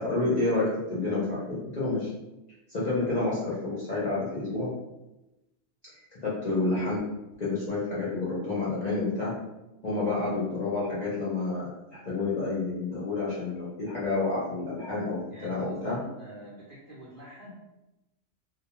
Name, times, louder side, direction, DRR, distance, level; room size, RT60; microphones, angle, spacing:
voice 1, 0.0-2.1 2.7-4.7 6.2-7.0 7.4-9.3 9.8-16.0, left 3 dB, 45° left, -9 dB, 0.5 m, -29 dB
voice 2, 15.3-17.5, equal, 55° right, -7 dB, 0.6 m, -46 dB
2.2 x 2.2 x 2.9 m, 0.96 s
omnidirectional pair, 1.4 m